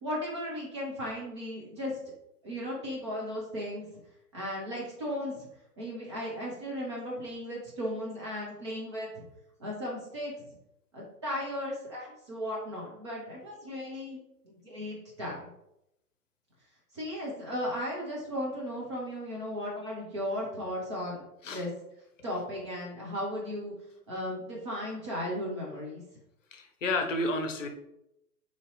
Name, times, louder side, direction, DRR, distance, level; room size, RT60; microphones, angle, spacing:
voice 1, 0.0-2.0 2.4-3.9 4.3-5.5 5.8-9.1 9.6-10.3 10.9-14.2 14.6-15.5 16.9-21.7 22.2-23.7 24.1-26.0, equal, 20° right, -4 dB, 0.5 m, -36 dB
voice 2, 26.5-27.7, left 2 dB, 55° left, 5 dB, 0.7 m, -31 dB
3.1 x 2.6 x 3.8 m, 0.84 s
figure-of-eight pair, 115°, 46 cm